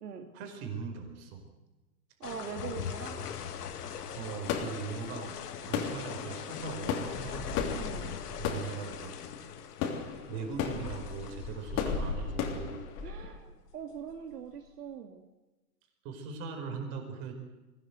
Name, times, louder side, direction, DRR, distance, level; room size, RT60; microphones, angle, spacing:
voice 1, 0.3-1.5 4.2-5.3 5.6-7.5 8.4-9.2 10.3-12.9 16.0-17.4, right 5 dB, 40° right, 5 dB, 5.1 m, -40 dB
sound 1, 2.2-14.8, left 8 dB, 80° left, 2.2 m, -42 dB
voice 2, 2.2-3.2 7.8-8.1 13.0-15.3, right 7 dB, 80° right, 5 dB, 2.2 m, -42 dB
sound 2, 3.3-13.4, left 6 dB, 35° left, 3.3 m, -36 dB
22.0 x 17.5 x 8.1 m, 1.1 s
hypercardioid pair, 145°, 46 cm